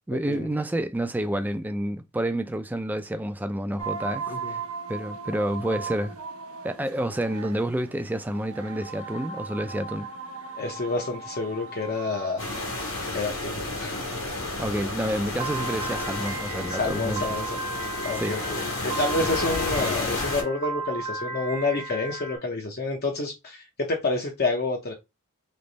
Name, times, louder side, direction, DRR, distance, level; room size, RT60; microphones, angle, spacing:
voice 1, 0.1-4.6 4.9-6.2 6.6-10.1 14.6-17.3 18.2-18.4, right 1 dB, 10° right, 0.3 m, -29 dB
sound 1, 3.8-19.9, right 5 dB, 90° right, 0.8 m, -39 dB
voice 2, 10.6-12.6 13.1-14.0 14.4-14.6 16.7-17.6 18.0-24.9, left 3 dB, 45° left, 0.7 m, -29 dB
sound 2, 12.4-20.4, left 2 dB, 70° left, 1.6 m, -31 dB
Piano, 15.4-22.4, right 3 dB, 25° right, 0.8 m, -35 dB
3.3 x 3.1 x 3.9 m
head